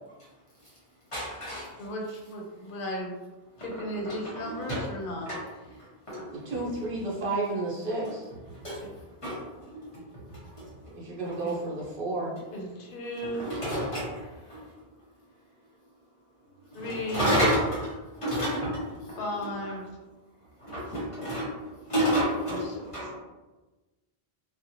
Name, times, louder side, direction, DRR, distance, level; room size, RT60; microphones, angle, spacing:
voice 1, 1.1-1.8 4.0-4.8 5.2-5.4 5.8-6.6 8.5-8.9 9.2-10.9 11.2-11.4 13.2-14.7 16.7-19.2 20.6-23.2, equal, 35° left, -7 dB, 0.9 m, -31 dB
voice 2, 1.8-3.2 3.6-5.3 8.8-8.9 11.4-11.6 12.5-13.5 16.7-17.4 19.2-19.8 22.5-22.8 23.1-23.2, equal, 65° left, 0 dB, 0.7 m, -35 dB
voice 3, 6.3-8.3 10.9-12.3, right 2 dB, 60° right, -5 dB, 1.0 m, -31 dB
2.5 x 2.1 x 2.7 m, 1.1 s
omnidirectional pair, 1.1 m